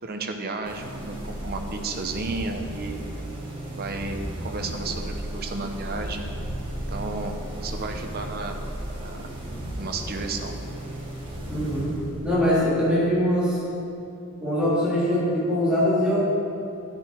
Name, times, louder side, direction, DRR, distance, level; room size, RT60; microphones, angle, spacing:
voice 1, 0.0-3.0 3.7-6.3 6.9-8.6 9.0-9.3 9.7-10.5, right 3 dB, 45° right, 3 dB, 0.9 m, -33 dB
sound 1, 0.6-12.6, right 1 dB, 25° right, 3.4 m, -35 dB
voice 2, 11.5-11.9 12.2-13.6 14.4-16.3, equal, 5° right, -10 dB, 3.1 m, -22 dB
12.5 x 10.5 x 4.6 m, 2.7 s
head